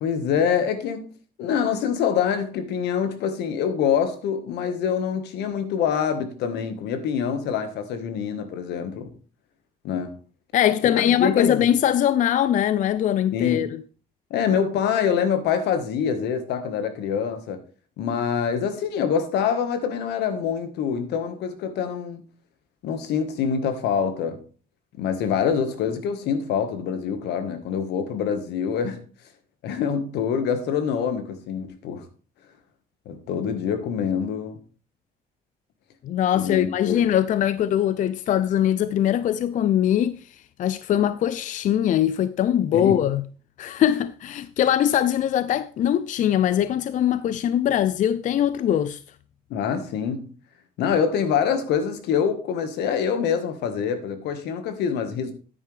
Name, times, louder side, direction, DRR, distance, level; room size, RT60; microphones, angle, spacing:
voice 1, 0.0-1.1 1.4-9.1 9.8-10.1 11.0-11.7 13.3-13.7 14.3-17.6 18.0-22.2 22.8-24.4 25.0-29.0 29.6-32.1 33.0-34.6 36.3-37.0 42.7-43.0 49.5-50.3 50.8-55.3, left 7 dB, 80° left, 1.6 m, -25 dB
voice 2, 10.5-13.7 36.0-43.2 43.6-49.0, left 10 dB, 50° left, 0.4 m, -22 dB
9.9 x 9.2 x 3.4 m
cardioid pair, 110°, 17 cm